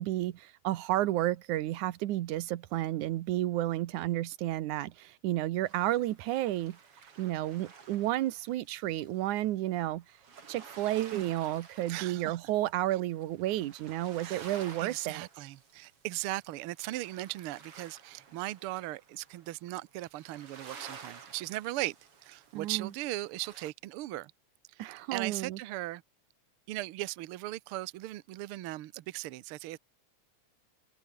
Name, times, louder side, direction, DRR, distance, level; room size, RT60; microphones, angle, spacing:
voice 1, 0.0-6.8 7.2-10.0 10.5-15.3 22.5-22.9 24.8-25.6, right 14 dB, 90° right, 2.4 m, -31 dB
sound 1, 5.6-23.7, right 5 dB, 50° right, 3.9 m, -53 dB
voice 2, 11.9-12.4 14.2-14.5 14.8-21.9 22.2-24.3 24.7-24.8 25.1-26.0 26.7-29.8, right 17 dB, 70° right, 1.3 m, -38 dB
open air
omnidirectional pair, 3.4 m